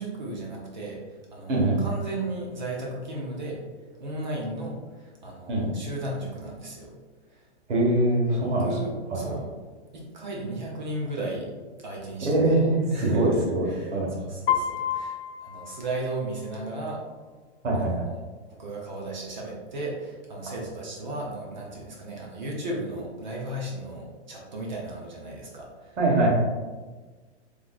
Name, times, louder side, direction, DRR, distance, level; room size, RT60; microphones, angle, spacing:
voice 1, 0.0-3.6 4.0-6.9 7.3-7.4 8.3-9.5 9.9-11.5 11.8-12.6 12.9-17.0 17.7-18.2 18.5-26.0, right 1 dB, 40° right, -2 dB, 0.6 m, -35 dB
voice 2, 1.5-1.9 5.5-5.7 7.7-8.7 9.1-9.3 12.2-14.2 17.6-18.1 26.0-26.3, right 2 dB, 80° right, -2 dB, 1.4 m, -23 dB
Piano, 14.5-16.5, left 9 dB, 60° left, 0.5 m, -30 dB
3.8 x 3.1 x 2.3 m, 1.3 s
hypercardioid pair, 180°, 35 cm